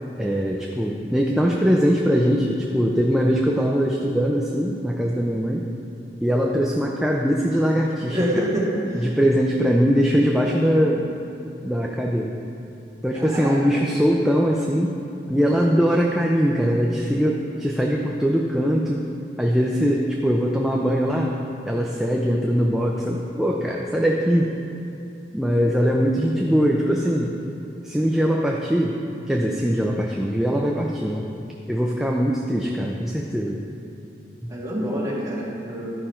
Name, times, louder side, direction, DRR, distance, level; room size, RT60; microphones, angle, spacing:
voice 1, 0.2-5.6 6.2-8.2 8.9-11.0 11.6-12.3 13.0-14.9 15.3-19.0 19.4-21.3 21.7-24.5 25.3-27.3 27.8-29.0 29.3-31.3 31.7-33.6 34.4-34.5, equal, ahead, -1 dB, 0.4 m, -21 dB
voice 2, 8.1-9.1 13.1-13.6 34.5-35.9, equal, 20° right, -7 dB, 1.9 m, -26 dB
12.0 x 5.5 x 4.4 m, 2.7 s
head